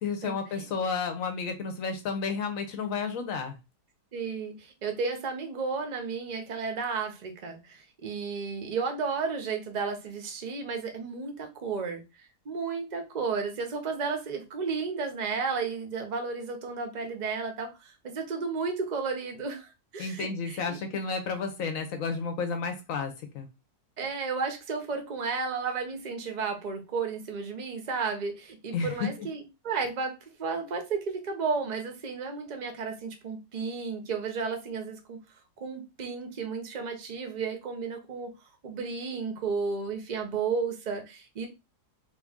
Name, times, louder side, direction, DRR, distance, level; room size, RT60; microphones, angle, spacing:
voice 1, 0.0-3.6 20.0-23.5 28.7-29.3, left 5 dB, 65° left, 1.0 m, -32 dB
voice 2, 4.1-12.0 12.5-20.8 24.0-35.2 35.6-38.3 38.6-41.5, right 5 dB, 50° right, 0.5 m, -33 dB
3.0 x 2.6 x 3.5 m
omnidirectional pair, 1.7 m